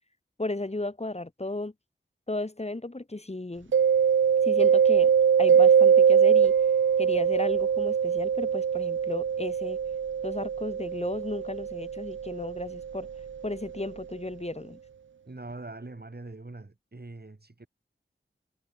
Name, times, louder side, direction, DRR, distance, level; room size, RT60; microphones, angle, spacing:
voice 1, 0.4-1.7 2.3-3.7 4.4-5.1 5.4-6.6 7.0-9.8 10.2-13.1 13.4-14.8, left 2 dB, 30° left, 1.7 m, -34 dB
Mallet percussion, 3.7-13.3, right 7 dB, 65° right, 0.4 m, -23 dB
voice 2, 15.3-17.7, right 2 dB, 50° right, 6.7 m, -42 dB
wide cardioid pair, 40°, 21 cm